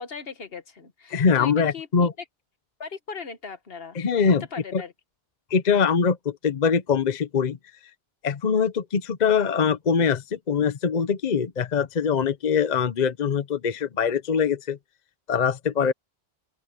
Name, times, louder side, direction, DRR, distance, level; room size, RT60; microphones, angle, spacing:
voice 1, 0.0-1.9 2.8-4.0 4.5-4.9 15.8-15.9, left 5 dB, 70° left, 1.5 m, -38 dB
voice 2, 1.1-2.1 4.0-4.4 4.7-4.8 5.5-7.6 8.2-14.8 15.3-15.9, left 6 dB, 45° left, 0.9 m, -23 dB
open air
omnidirectional pair, 1.0 m